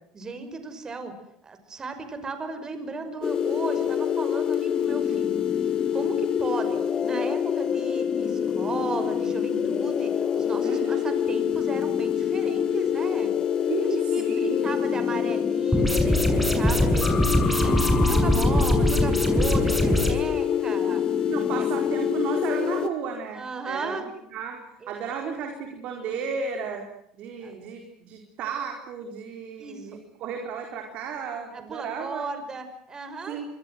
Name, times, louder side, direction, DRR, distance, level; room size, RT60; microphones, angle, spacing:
voice 1, 0.1-1.1 1.4-13.4 13.9-21.0 21.5-21.7 23.3-24.0 24.8-25.4 27.4-27.5 29.6-29.9 31.5-33.4, right 4 dB, 25° right, 9 dB, 5.8 m, -36 dB
sound 1, 3.2-22.9, left 8 dB, 35° left, 2.2 m, -26 dB
voice 2, 10.6-11.1 13.7-14.7 21.3-24.6 24.9-26.9 27.1-32.2 33.3-33.5, right 6 dB, 60° right, 3 dB, 4.3 m, -33 dB
sound 2, 15.7-20.1, equal, 5° right, 6.8 m, -22 dB
26.5 x 22.0 x 7.9 m, 0.72 s
supercardioid pair, 90°, 2 cm